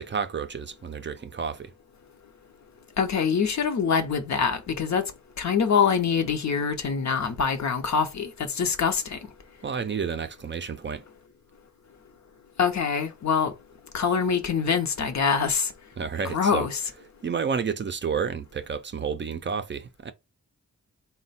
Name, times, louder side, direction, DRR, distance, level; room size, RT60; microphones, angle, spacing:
voice 1, 0.0-1.7 9.6-11.0 16.0-16.7 17.2-20.1, right 6 dB, 40° right, 0.4 m, -30 dB
voice 2, 3.0-5.1 5.4-9.2 12.6-13.5 13.9-15.7 16.2-16.8, left 6 dB, 65° left, 0.7 m, -24 dB
4.1 x 2.2 x 4.0 m
wide cardioid pair, 115°, 31 cm